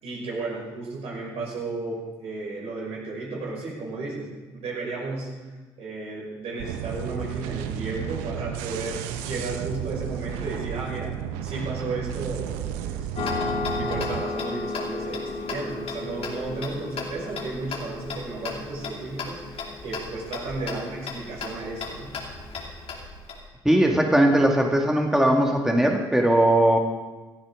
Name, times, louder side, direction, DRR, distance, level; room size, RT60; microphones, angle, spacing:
voice 1, 0.0-5.4 5.8-11.1 11.4-13.4 13.8-22.1, right 3 dB, 65° right, -3 dB, 5.5 m, -34 dB
sound 1, 6.6-14.2, right 9 dB, 85° right, 0.7 m, -33 dB
Tick-tock, 13.2-23.4, left 4 dB, 60° left, 2.6 m, -33 dB
voice 2, 23.7-26.8, right 1 dB, 5° right, 1 dB, 1.9 m, -19 dB
17.0 x 13.5 x 3.8 m, 1.2 s
hypercardioid pair, 50°, 11 cm